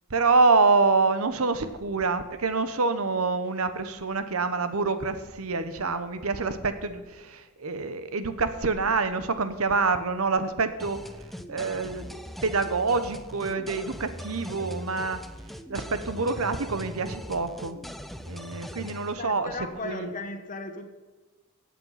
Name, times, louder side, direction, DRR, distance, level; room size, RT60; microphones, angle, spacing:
voice 1, 0.1-11.0 11.5-15.2 15.7-17.8 18.2-19.5 19.8-20.1, right 4 dB, 80° right, 11 dB, 1.1 m, -26 dB
sound 1, 10.8-19.1, equal, ahead, 0.6 m, -40 dB
voice 2, 19.1-20.9, left 2 dB, 40° left, 7 dB, 1.4 m, -36 dB
15.5 x 8.6 x 5.8 m, 1.2 s
head